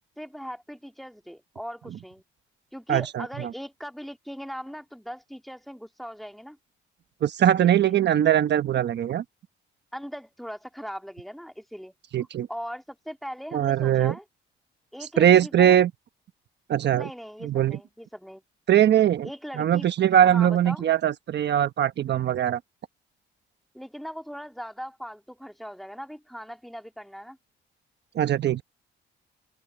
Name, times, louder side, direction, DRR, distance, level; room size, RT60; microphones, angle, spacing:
voice 1, 0.2-2.2 2.7-6.6 7.8-8.0 9.9-11.9 12.5-14.2 14.9-15.8 16.9-18.4 19.2-19.9 20.2-20.8 23.7-27.4, equal, ahead, 2.4 m, -39 dB
voice 2, 2.9-3.5 7.2-9.2 12.1-12.5 13.5-14.1 15.2-15.9 16.7-17.1 17.4-17.8 18.7-19.3 19.6-22.6 28.1-28.6, right 10 dB, 60° right, 1.1 m, -21 dB
open air
cardioid pair, 90°, 20 cm